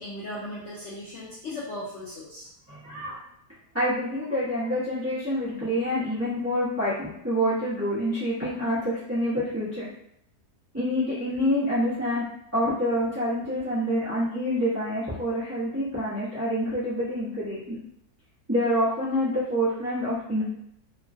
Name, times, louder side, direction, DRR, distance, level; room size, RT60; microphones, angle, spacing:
voice 1, 0.0-2.5, left 1 dB, 65° left, -6 dB, 0.7 m, -37 dB
voice 2, 2.7-3.2 3.7-9.9 10.7-12.2 12.5-17.8 18.5-20.4, equal, 15° right, -12 dB, 0.7 m, -27 dB
3.0 x 2.1 x 2.6 m, 0.75 s
omnidirectional pair, 1.7 m